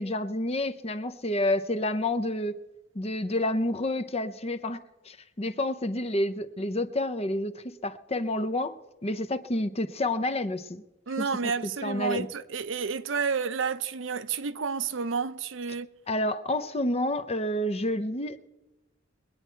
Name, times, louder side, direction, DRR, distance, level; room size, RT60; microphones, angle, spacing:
voice 1, 0.0-2.6 2.9-4.8 5.1-10.8 11.2-12.3 16.1-18.4, left 1 dB, 30° left, 0.7 m, -29 dB
voice 2, 11.1-15.9, right 5 dB, 75° right, 0.6 m, -30 dB
22.5 x 9.2 x 4.5 m
head